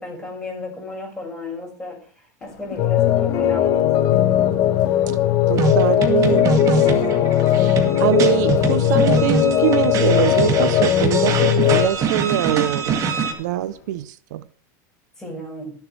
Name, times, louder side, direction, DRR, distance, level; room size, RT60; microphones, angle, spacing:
voice 1, 0.0-2.0 2.4-4.2 15.2-15.7, left 2 dB, 5° left, 5.8 m, -34 dB
Crowd, 2.4-14.0, left 7 dB, 80° left, 3.5 m, -40 dB
sound 1, 2.8-11.9, left 11 dB, 40° left, 1.3 m, -18 dB
sound 2, 5.5-13.3, right 5 dB, 35° right, 2.1 m, -24 dB
voice 2, 5.5-7.1 7.5-13.0 13.4-14.4, right 14 dB, 80° right, 0.7 m, -23 dB
22.5 x 7.5 x 3.3 m
supercardioid pair, 140°, 9 cm